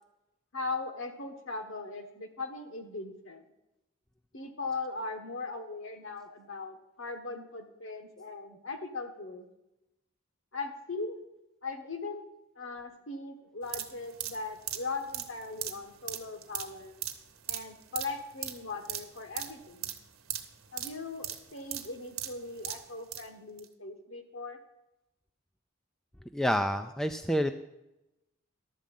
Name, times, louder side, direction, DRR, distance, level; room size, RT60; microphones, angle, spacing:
voice 1, 0.5-3.4 4.3-9.5 10.5-11.2 11.6-12.2 12.6-16.9 17.5-19.9 20.7-24.6, left 3 dB, 60° left, 6 dB, 1.3 m, -39 dB
sound 1, 13.6-23.3 23.6-23.7, right 12 dB, 70° right, 1.1 m, -39 dB
voice 2, 26.3-27.5, equal, ahead, 7 dB, 0.3 m, -28 dB
11.5 x 7.5 x 5.4 m, 0.92 s
head